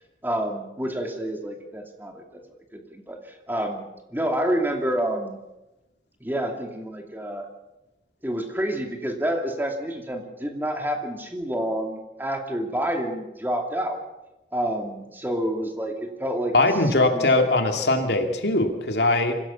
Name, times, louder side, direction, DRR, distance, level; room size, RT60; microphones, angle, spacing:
voice 1, 0.2-2.2 2.7-5.4 6.2-7.5 8.2-14.0 14.5-16.5 16.9-17.3, right 1 dB, 10° right, 3 dB, 2.5 m, -28 dB
voice 2, 16.5-19.4, left 2 dB, 75° left, 5 dB, 2.6 m, -21 dB
25.0 x 17.0 x 7.1 m, 0.98 s
head